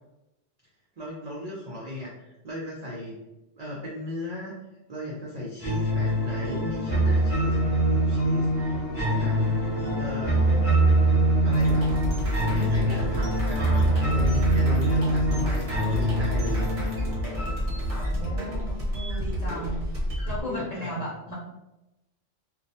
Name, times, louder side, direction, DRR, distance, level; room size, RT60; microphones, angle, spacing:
voice 1, 1.0-3.2 3.6-4.5 4.9-9.4 10.0-10.5 11.4-11.9 12.4-16.9 19.4-19.6 20.4-21.1, left 1 dB, 65° right, -5 dB, 0.4 m, -36 dB
sound 1, 5.6-18.6, right 1 dB, 15° left, 0.8 m, -24 dB
voice 2, 9.8-10.8 17.9-19.8 20.3-21.3, equal, 45° left, -7 dB, 0.6 m, -36 dB
sound 2, 11.5-20.4, equal, 45° right, 0.8 m, -29 dB
2.3 x 2.0 x 2.6 m, 0.95 s
omnidirectional pair, 1.2 m